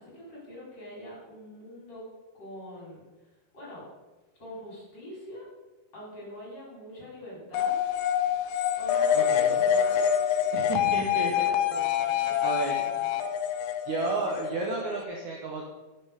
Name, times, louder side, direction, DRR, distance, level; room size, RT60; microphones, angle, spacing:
voice 1, 0.0-2.0 2.3-3.0 3.5-3.8 4.3-5.5 5.9-7.8 8.8-13.2, left 1 dB, 25° left, -5 dB, 4.4 m, -44 dB
sound 1, 7.5-15.0, left 9 dB, 90° left, 3.1 m, -26 dB
voice 2, 9.1-9.6 10.5-11.3 12.4-12.9 13.9-15.7, right 3 dB, 80° right, 0 dB, 1.7 m, -32 dB
10.5 x 8.5 x 5.1 m, 1.2 s
omnidirectional pair, 5.1 m